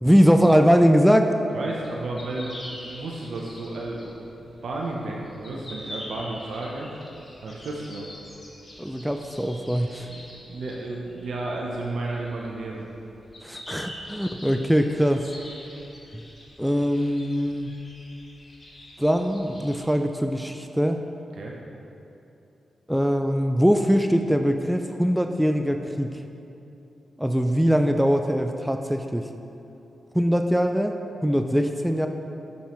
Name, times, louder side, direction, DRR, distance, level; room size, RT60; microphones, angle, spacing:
voice 1, 0.0-1.3 8.8-10.1 13.4-15.3 16.6-17.7 19.0-21.0 22.9-26.2 27.2-29.3 30.1-32.1, equal, 5° right, 6 dB, 0.3 m, -22 dB
voice 2, 1.5-6.9 7.4-8.1 10.0-12.9 21.3-21.5, right 2 dB, 70° right, -2 dB, 0.6 m, -33 dB
sound 1, 1.7-19.9, left 1 dB, 40° left, 1.4 m, -45 dB
6.5 x 5.4 x 3.0 m, 2.9 s
supercardioid pair, 40°, 0 cm